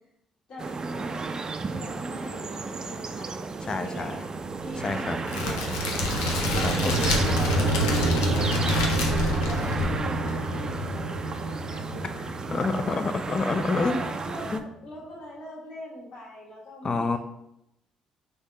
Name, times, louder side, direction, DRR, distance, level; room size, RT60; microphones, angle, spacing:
voice 1, 0.5-4.3 4.6-5.8 6.5-8.6 8.9-12.3 13.7-17.2, equal, 60° left, -6 dB, 1.5 m, -41 dB
sound 1, 0.6-14.6, right 4 dB, 35° right, 0.4 m, -33 dB
voice 2, 3.7-4.1 4.8-5.2 6.4-6.9 12.5-14.0 14.5-14.6 16.8-17.2, left 3 dB, 35° left, 9 dB, 0.5 m, -28 dB
sound 2, 4.2-14.4, right 1 dB, 90° right, 0.5 m, -29 dB
Crackle, 5.3-10.3, left 3 dB, 80° left, 0.6 m, -30 dB
3.4 x 2.8 x 4.5 m, 0.82 s
hypercardioid pair, 45°, 2 cm